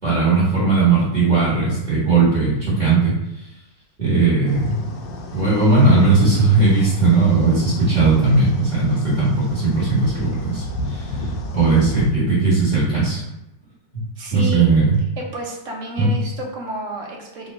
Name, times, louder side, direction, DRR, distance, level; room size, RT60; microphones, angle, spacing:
voice 1, 0.0-3.5 4.0-4.8 5.3-13.2 14.3-15.0 16.0-16.1, right 3 dB, 25° right, -10 dB, 1.7 m, -18 dB
sound 1, 4.5-12.1, left 1 dB, 85° left, 1.3 m, -33 dB
voice 2, 14.2-14.7 15.2-17.5, equal, 55° right, -1 dB, 1.0 m, -30 dB
3.9 x 2.7 x 4.3 m, 0.88 s
omnidirectional pair, 1.9 m